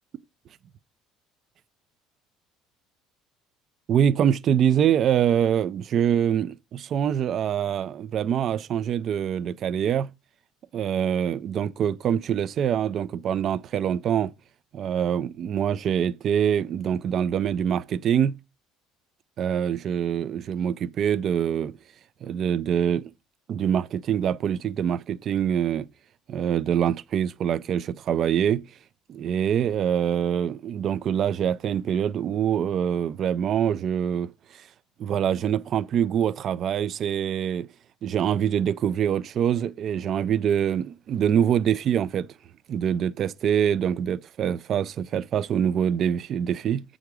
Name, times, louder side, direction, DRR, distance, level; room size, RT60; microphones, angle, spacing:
voice 1, 3.9-10.1 10.7-14.3 14.7-18.3 19.4-21.7 22.2-23.1 23.5-25.9 26.3-28.6 29.1-34.3 35.0-37.7 38.0-42.3 42.7-46.8, right 9 dB, 40° right, 0.3 m, -24 dB
7.9 x 3.7 x 4.7 m
cardioid pair, 165°, 0 cm